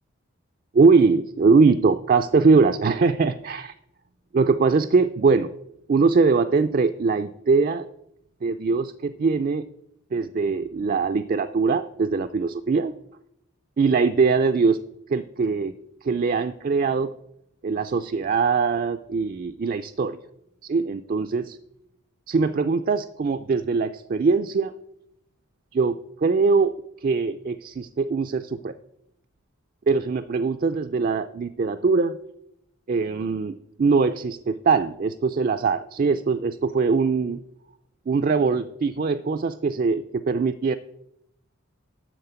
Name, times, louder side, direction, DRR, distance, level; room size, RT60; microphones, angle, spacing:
voice 1, 0.7-3.7 4.3-5.5 5.9-7.9 8.4-9.6 10.1-12.9 13.8-14.8 15.1-15.7 16.0-17.1 17.6-20.2 20.6-21.6 22.3-24.7 25.7-26.7 27.0-28.7 29.9-32.2 32.9-37.4 38.1-40.7, right 4 dB, 40° right, 10 dB, 0.4 m, -22 dB
12.5 x 4.2 x 8.0 m, 0.79 s
head